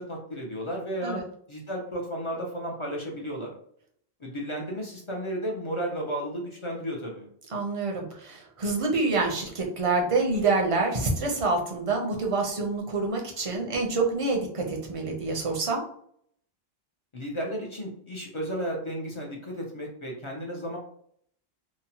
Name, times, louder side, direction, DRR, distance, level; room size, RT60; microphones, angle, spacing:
voice 1, 0.0-3.5 4.2-7.3 17.1-20.8, equal, 40° left, -1 dB, 0.5 m, -33 dB
voice 2, 7.5-15.8, right 3 dB, 40° right, 1 dB, 0.5 m, -27 dB
2.9 x 2.1 x 2.7 m, 0.63 s
omnidirectional pair, 1.1 m